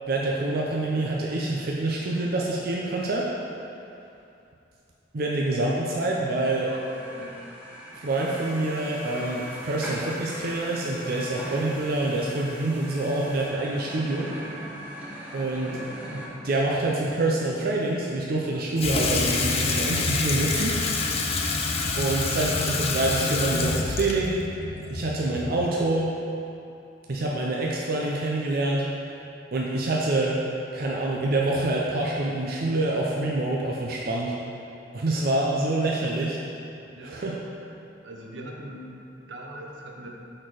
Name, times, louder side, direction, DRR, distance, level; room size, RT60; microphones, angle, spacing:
voice 1, 0.1-3.3 5.1-6.7 8.0-14.3 15.3-15.8 16.4-20.8 22.0-24.4 24.9-26.1 27.1-28.9 29.5-30.4 30.7-34.4 34.9-36.4 37.0-37.4, right 2 dB, 55° right, -3 dB, 0.5 m, -26 dB
sound 1, 6.3-16.3, equal, 10° right, 0.9 m, -40 dB
voice 2, 6.7-7.4 37.0-37.5 38.0-40.1, right 1 dB, 80° right, -1 dB, 0.8 m, -42 dB
sound 2, 8.1-13.5, equal, 40° right, 1.5 m, -46 dB
Water tap faucet / Sink (filling or washing), 18.8-25.8, left 3 dB, 35° left, 0.5 m, -27 dB
6.0 x 4.3 x 4.8 m, 2.7 s
head